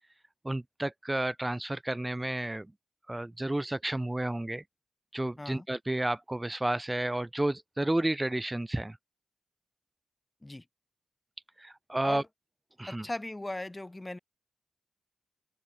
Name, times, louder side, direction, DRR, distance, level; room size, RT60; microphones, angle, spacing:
voice 1, 0.4-2.7 3.1-4.6 5.1-9.0 11.6-12.2 12.8-13.0, right 1 dB, 15° right, 1.4 m, -31 dB
voice 2, 12.8-14.2, left 1 dB, 20° left, 5.8 m, -38 dB
cardioid pair, 55°, 0 cm